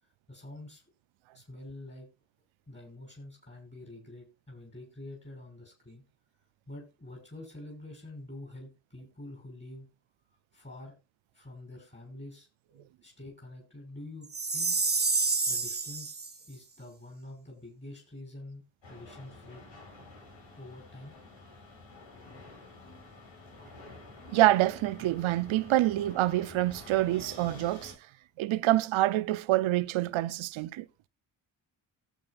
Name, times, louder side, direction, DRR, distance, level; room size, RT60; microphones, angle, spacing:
voice 1, 0.3-0.8 1.3-2.1 2.7-6.0 6.7-9.9 10.5-10.9 11.3-14.8 15.5-16.2 16.5-19.6 20.6-21.1, left 1 dB, 25° left, 6.4 m, -47 dB
Chime, 14.3-16.3, right 3 dB, 20° right, 1.4 m, -28 dB
sound 1, 18.8-27.9, left 2 dB, 70° left, 6.5 m, -49 dB
voice 2, 24.3-27.9 28.4-30.9, right 15 dB, 80° right, 0.7 m, -26 dB
18.0 x 8.1 x 2.5 m
supercardioid pair, 50°, 47 cm